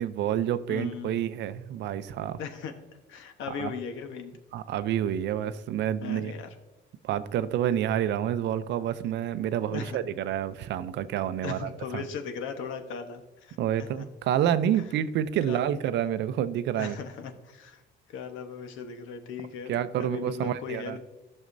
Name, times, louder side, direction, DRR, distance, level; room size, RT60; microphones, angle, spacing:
voice 1, 0.0-2.4 3.6-3.7 4.5-6.3 7.0-12.0 13.6-17.0 19.7-21.0, right 10 dB, 60° right, 13 dB, 0.5 m, -28 dB
voice 2, 0.7-1.2 2.4-2.7 3.1-4.3 6.0-6.5 9.6-10.0 11.4-14.1 14.7-14.8 15.5-15.6 16.8-17.8 18.1-21.0, left 6 dB, 80° left, 6 dB, 1.1 m, -38 dB
14.0 x 6.4 x 2.6 m, 1.0 s
cardioid pair, 150°, 20 cm